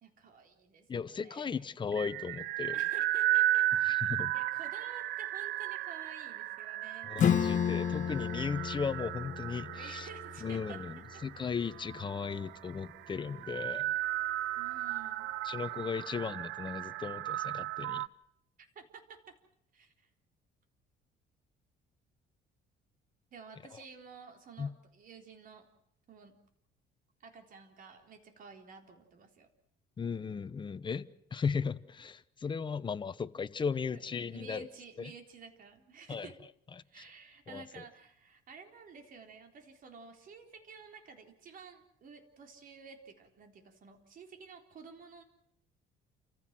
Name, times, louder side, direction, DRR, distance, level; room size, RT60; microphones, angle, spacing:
voice 1, 0.0-1.7 2.7-3.7 4.3-7.1 7.6-7.8 9.7-10.8 11.1-11.2 14.6-15.3 18.8-19.3 19.7-19.9 23.3-25.7 26.1-26.4 27.2-29.5 33.9-36.4 36.9-45.2, right 5 dB, 50° right, 4.0 m, -52 dB
voice 2, 0.9-2.8 3.8-4.3 7.0-10.1 10.4-13.9 15.4-18.0 23.7-23.8 24.6-24.7 30.0-34.7 35.0-35.1 36.1-36.3 37.5-37.8, left 6 dB, 25° left, 0.9 m, -36 dB
sound 1, 1.9-18.1, right 14 dB, 80° right, 0.8 m, -35 dB
Acoustic guitar / Strum, 7.2-12.4, left 8 dB, 45° left, 1.5 m, -33 dB
28.5 x 15.5 x 7.6 m
cardioid pair, 115°, 18 cm